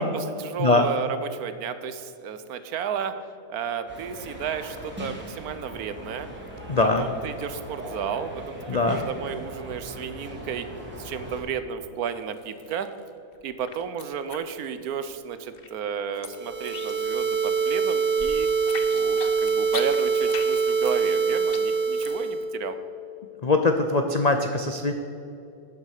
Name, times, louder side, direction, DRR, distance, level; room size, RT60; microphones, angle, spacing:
voice 1, 0.0-3.2 3.5-6.3 7.0-10.7 11.0-12.9 13.4-18.5 18.9-22.8, right 7 dB, 70° right, 11 dB, 1.2 m, -32 dB
sound 1, 3.9-11.4, equal, 5° right, 2.6 m, -39 dB
voice 2, 6.7-7.0 8.7-9.0 23.4-24.9, left 3 dB, 70° left, 5 dB, 0.3 m, -22 dB
sound 2, 12.1-13.1 13.4-15.1 15.4-17.3 17.6-22.3, left 6 dB, 45° left, 0.8 m, -40 dB
sound 3, 16.3-22.4, right 5 dB, 90° right, 2.9 m, -24 dB
12.0 x 7.3 x 6.6 m, 2.6 s
omnidirectional pair, 1.7 m